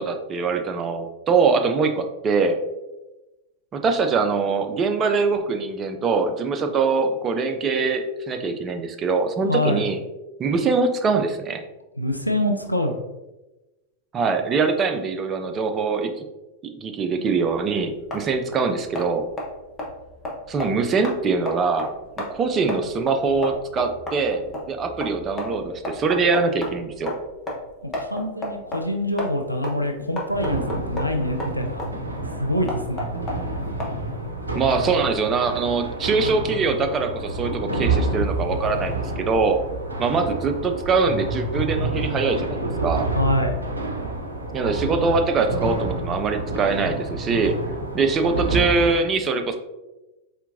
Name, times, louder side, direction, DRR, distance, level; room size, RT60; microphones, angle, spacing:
voice 1, 0.0-2.6 3.7-10.0 10.4-11.6 14.1-16.3 16.6-19.3 20.5-21.9 22.2-27.2 34.6-39.6 40.0-43.1 44.5-47.6 47.9-49.6, right 4 dB, 25° right, 6 dB, 0.4 m, -23 dB
voice 2, 9.5-9.8 12.0-13.0 28.0-31.9 32.4-33.1 43.1-43.6, left 1 dB, 90° left, 4 dB, 0.3 m, -25 dB
sound 1, 17.5-34.3, left 1 dB, 20° left, 1.0 m, -34 dB
sound 2, 30.3-48.9, right 2 dB, 75° right, 0.5 m, -29 dB
4.4 x 3.4 x 2.6 m, 1.0 s
figure-of-eight pair, 90°, 0 cm